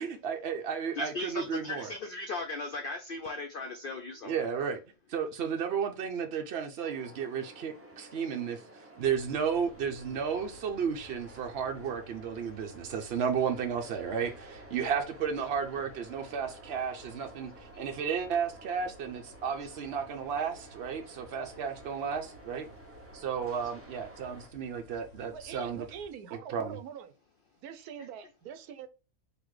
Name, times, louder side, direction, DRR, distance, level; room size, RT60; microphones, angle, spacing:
voice 1, 0.0-1.9 4.2-4.8 5.1-22.7 23.1-25.9 26.5-26.8, right 7 dB, 60° right, 0.7 m, -33 dB
voice 2, 1.0-4.3, left 3 dB, 60° left, 0.5 m, -37 dB
sound 1, 6.8-24.5, right 1 dB, 20° right, 0.4 m, -52 dB
sound 2, 9.0-26.1, right 1 dB, 75° left, 1.5 m, -55 dB
voice 3, 25.3-27.1 27.6-28.9, right 8 dB, 90° right, 1.2 m, -44 dB
4.0 x 2.8 x 4.6 m
omnidirectional pair, 1.6 m